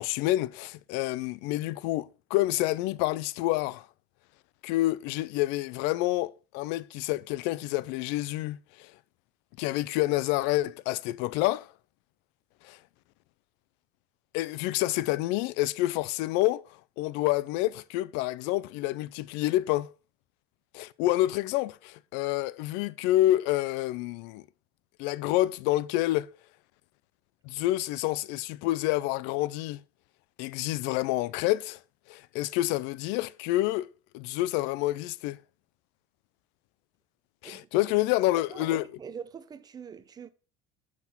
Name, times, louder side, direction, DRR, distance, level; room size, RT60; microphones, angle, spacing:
voice 1, 0.0-3.9 4.6-8.9 9.6-11.7 12.6-12.8 14.3-16.6 17.0-19.9 20.7-24.4 25.0-26.3 27.4-29.8 30.4-31.8 32.1-33.9 34.1-35.4 37.4-38.8, left 16 dB, 70° left, 0.5 m, -28 dB
voice 2, 38.4-40.3, right 7 dB, 20° right, 0.5 m, -43 dB
6.0 x 5.9 x 5.7 m
cardioid pair, 155°, 19 cm